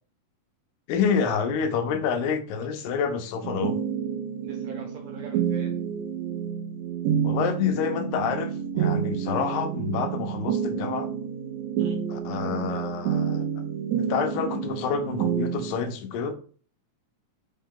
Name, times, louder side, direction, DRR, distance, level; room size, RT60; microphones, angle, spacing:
voice 1, 0.9-3.8 7.2-11.1 12.1-13.5 14.0-16.3, left 6 dB, 85° left, 6 dB, 2.3 m, -28 dB
sound 1, 3.4-15.7, right 8 dB, 90° right, 1.5 m, -29 dB
voice 2, 4.4-5.8 11.8-12.0, right 5 dB, 70° right, 1 dB, 2.3 m, -43 dB
5.6 x 2.2 x 3.6 m, 0.43 s
omnidirectional pair, 4.0 m